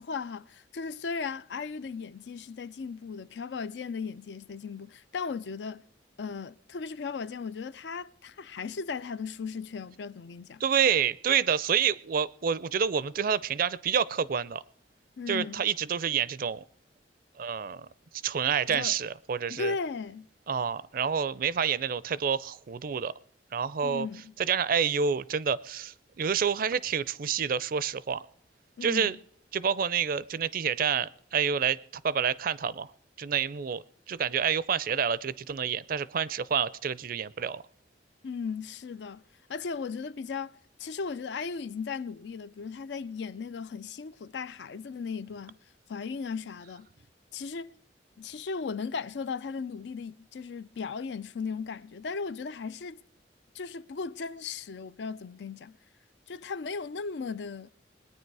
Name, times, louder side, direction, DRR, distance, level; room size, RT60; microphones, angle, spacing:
voice 1, 0.0-5.9 6.2-10.6 15.2-15.6 18.7-19.0 19.5-20.3 23.8-24.3 28.8-29.2 38.2-39.2 39.5-45.6 45.9-46.9 47.3-47.7 48.2-53.0 53.5-55.8 56.3-57.7, left 5 dB, 75° left, 0.4 m, -36 dB
voice 2, 10.6-14.6 15.3-16.6 17.4-17.9 18.2-19.7 20.5-23.1 23.5-24.1 24.4-28.2 28.8-29.2 29.5-31.8 32.0-32.9 33.2-37.6, right 7 dB, 55° right, 0.4 m, -28 dB
21.0 x 9.4 x 4.7 m
head